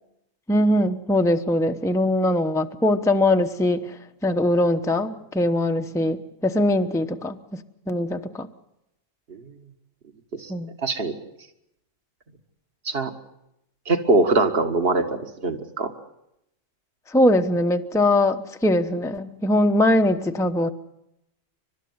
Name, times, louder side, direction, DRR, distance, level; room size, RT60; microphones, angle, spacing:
voice 1, 0.5-3.8 4.2-7.6 7.9-8.5 10.5-10.7 17.1-20.7, left 1 dB, 5° left, 6 dB, 0.9 m, -21 dB
voice 2, 10.8-11.1 12.9-13.1 13.9-15.9, right 3 dB, 50° right, 6 dB, 2.0 m, -22 dB
29.5 x 13.0 x 9.6 m, 0.84 s
omnidirectional pair, 1.3 m